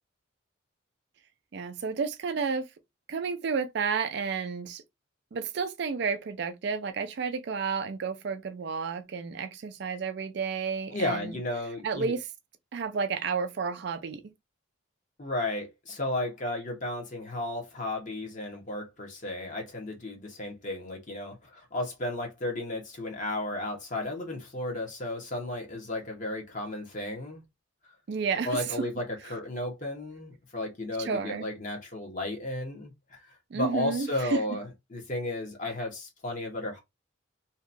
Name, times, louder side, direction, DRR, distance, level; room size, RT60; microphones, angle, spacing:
voice 1, 1.5-2.7 3.1-4.8 5.3-11.4 11.8-12.3 12.7-14.3 28.1-28.8 31.0-31.5 33.5-34.4, right 5 dB, 55° right, 0.4 m, -31 dB
voice 2, 10.9-12.1 15.2-27.4 28.4-36.8, left 2 dB, 40° left, 0.9 m, -34 dB
2.8 x 2.3 x 2.5 m
head